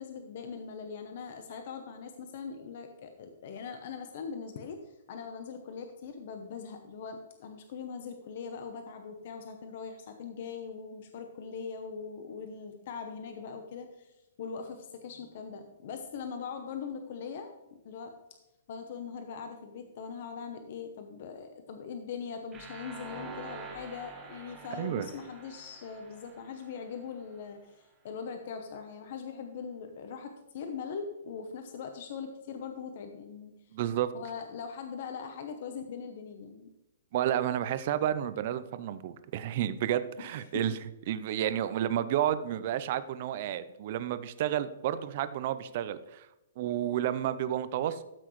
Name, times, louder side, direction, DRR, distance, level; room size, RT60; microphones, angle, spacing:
voice 1, 0.0-18.1 18.7-33.5 34.1-36.7 40.2-40.8, left 6 dB, 50° left, 6 dB, 0.8 m, -41 dB
sound 1, 22.5-27.4, right 4 dB, 15° right, 1.4 m, -47 dB
voice 2, 33.7-34.1 37.1-40.7 41.1-46.3 46.6-48.0, right 11 dB, 45° right, 13 dB, 0.6 m, -31 dB
13.0 x 6.1 x 3.1 m, 0.93 s
hypercardioid pair, 160°, 0 cm